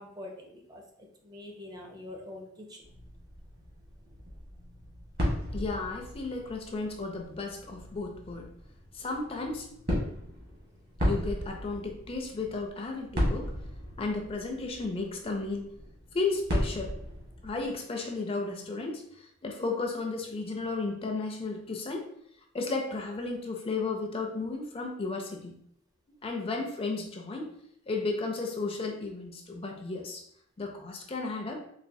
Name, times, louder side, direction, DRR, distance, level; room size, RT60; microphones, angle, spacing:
voice 1, 0.0-2.9, left 1 dB, 20° right, 1 dB, 0.5 m, -45 dB
sound 1, 2.8-17.7, equal, 50° right, 1.2 m, -36 dB
voice 2, 5.5-8.5 8.9-9.7 11.0-13.5 14.0-15.7 16.1-16.9 17.4-22.0 22.5-25.6 26.2-27.5 27.9-30.2 30.6-31.6, left 3 dB, 30° left, 1 dB, 0.4 m, -34 dB
4.1 x 2.5 x 2.6 m, 0.71 s
head